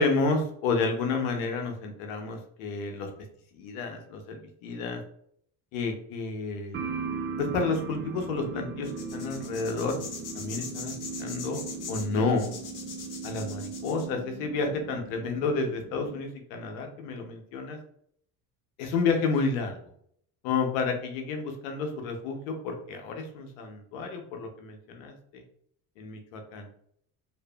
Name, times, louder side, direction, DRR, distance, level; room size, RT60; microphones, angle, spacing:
voice 1, 0.0-3.1 3.5-5.0 5.7-6.8 7.4-10.0 10.3-10.9 11.2-11.6 11.9-12.5 13.2-17.8 18.8-19.8 20.4-25.4 26.0-26.7, left 4 dB, 85° left, 4 dB, 0.7 m, -30 dB
sound 1, 6.7-16.2, right 5 dB, 30° right, 0.4 m, -38 dB
sound 2, 8.8-14.1, left 5 dB, 50° left, 0.8 m, -41 dB
2.6 x 2.5 x 2.2 m, 0.66 s
supercardioid pair, 75°, 41 cm